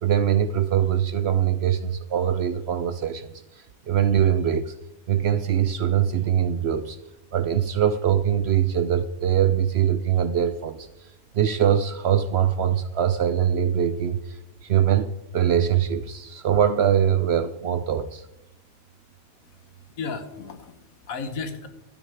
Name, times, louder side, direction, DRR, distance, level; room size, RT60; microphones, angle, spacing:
voice 1, 0.0-3.3 3.9-4.7 5.1-7.0 7.3-10.9 11.3-18.2, right 9 dB, 60° right, 0.7 m, -22 dB
voice 2, 19.4-21.7, left 4 dB, 75° left, 1.6 m, -35 dB
12.5 x 8.8 x 4.8 m
omnidirectional pair, 1.5 m